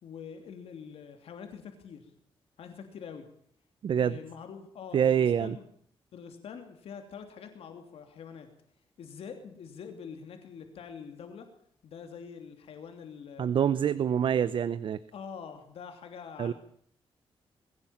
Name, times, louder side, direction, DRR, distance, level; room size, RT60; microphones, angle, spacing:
voice 1, 0.0-2.1 2.6-3.3 4.0-5.7 6.1-8.5 9.0-11.5 11.8-13.5 15.1-16.5, left 6 dB, 80° left, 6 dB, 3.0 m, -45 dB
voice 2, 3.8-4.2 4.9-5.6 13.4-15.0 16.4-16.5, right 8 dB, 60° right, 15 dB, 0.8 m, -26 dB
21.5 x 16.5 x 8.8 m, 0.63 s
wide cardioid pair, 150°, 10 cm